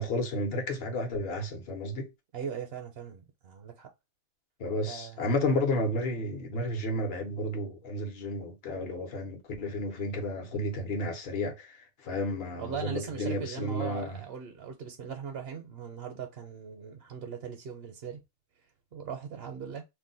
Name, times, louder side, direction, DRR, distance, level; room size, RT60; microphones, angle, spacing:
voice 1, 0.0-2.1 4.6-11.8 12.0-14.2, left 1 dB, 60° left, 1.0 m, -32 dB
voice 2, 2.3-3.9 4.8-5.3 12.6-18.2 18.9-19.8, right 7 dB, 65° right, 0.9 m, -39 dB
2.6 x 2.2 x 3.8 m
omnidirectional pair, 1.2 m